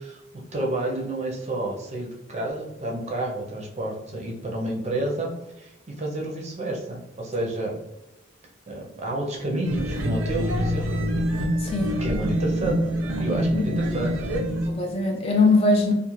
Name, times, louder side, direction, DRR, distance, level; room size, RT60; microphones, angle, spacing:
voice 1, 0.0-7.8 8.7-11.1 12.0-12.8 13.2-14.2, right 1 dB, 35° right, -1 dB, 0.5 m, -30 dB
sound 1, 9.6-14.7, equal, 90° right, 0.5 m, -26 dB
voice 2, 11.6-12.0 13.5-13.8 14.7-15.9, left 3 dB, 30° left, 2 dB, 0.3 m, -21 dB
2.4 x 2.4 x 3.0 m, 0.88 s
head